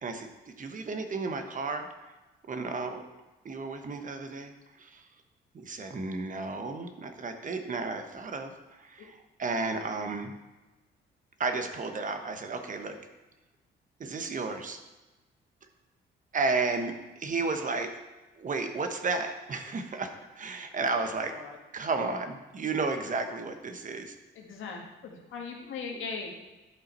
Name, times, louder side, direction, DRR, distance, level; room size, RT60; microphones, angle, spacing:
voice 1, 0.0-1.9 2.5-3.0 3.4-5.1 5.5-10.4 11.4-13.0 14.0-14.8 16.3-17.9 18.4-21.4 21.7-24.1 25.9-26.0, right 3 dB, 40° right, 7 dB, 1.0 m, -33 dB
voice 2, 24.4-26.3, left 5 dB, 80° left, 1 dB, 1.6 m, -38 dB
11.0 x 5.5 x 4.3 m, 1.1 s
cardioid pair, 90°, 20 cm